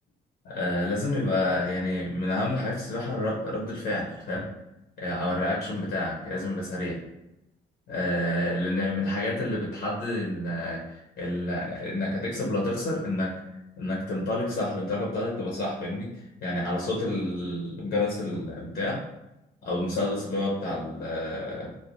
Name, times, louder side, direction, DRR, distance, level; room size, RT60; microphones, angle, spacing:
voice 1, 0.4-4.5 5.0-7.0 7.9-13.3 13.8-19.0 19.6-21.7, left 1 dB, 75° left, -3 dB, 0.7 m, -29 dB
3.2 x 2.1 x 2.4 m, 0.92 s
cardioid pair, 80°, 18 cm